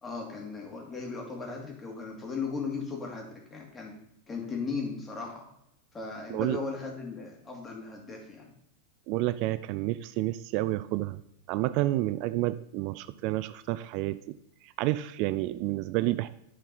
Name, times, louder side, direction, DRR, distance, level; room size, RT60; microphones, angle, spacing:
voice 1, 0.0-3.9 4.3-5.4 5.9-8.5, left 4 dB, 20° left, 0 dB, 2.3 m, -37 dB
voice 2, 9.1-11.2 11.5-14.3 14.8-16.3, right 16 dB, 55° right, 13 dB, 0.3 m, -29 dB
10.0 x 4.5 x 4.0 m, 0.81 s
hypercardioid pair, 110°, 0 cm